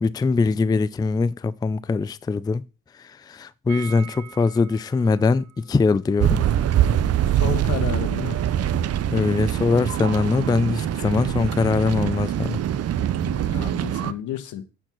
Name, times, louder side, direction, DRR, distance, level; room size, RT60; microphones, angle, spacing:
voice 1, 0.0-2.6 3.3-6.4 9.1-12.6, left 4 dB, 15° left, 0.3 m, -22 dB
sound 1, 3.7-9.5 9.7-9.8 10.1-10.2, right 11 dB, 80° right, 2.2 m, -46 dB
sound 2, 6.2-14.1, right 10 dB, 55° right, 0.6 m, -23 dB
voice 2, 7.3-8.4 13.2-14.6, left 9 dB, 80° left, 1.2 m, -32 dB
7.9 x 4.4 x 6.0 m
cardioid pair, 90°, 30 cm